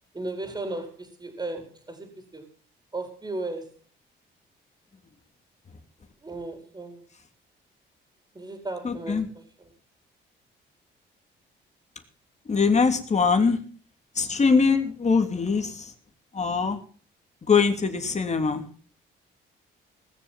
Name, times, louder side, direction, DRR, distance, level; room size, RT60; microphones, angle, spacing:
voice 1, 0.1-2.4 2.9-3.7 6.2-7.0 8.3-9.2, right 2 dB, 20° right, 5 dB, 4.4 m, -35 dB
voice 2, 8.8-9.3 12.5-13.6 14.1-15.9 16.3-16.8 17.5-18.7, left 5 dB, 35° left, 6 dB, 3.1 m, -22 dB
19.5 x 7.2 x 7.5 m, 0.43 s
cardioid pair, 90°, 20 cm